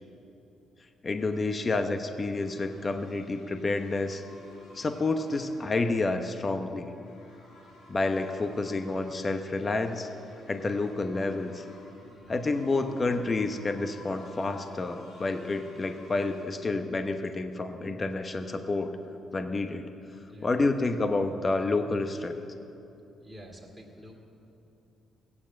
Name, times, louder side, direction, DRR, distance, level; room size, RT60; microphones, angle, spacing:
voice 1, 1.0-4.2 4.7-6.9 7.9-10.1 10.5-11.7 12.3-19.0 19.3-19.9 20.4-22.4, left 3 dB, 30° left, 7 dB, 0.9 m, -29 dB
sound 1, 2.3-16.4, left 2 dB, 90° left, 4.3 m, -54 dB
voice 2, 12.0-12.5 20.2-20.6 23.2-24.2, equal, ahead, -4 dB, 2.5 m, -49 dB
16.0 x 9.7 x 7.6 m, 2.9 s
cardioid pair, 90°, 0 cm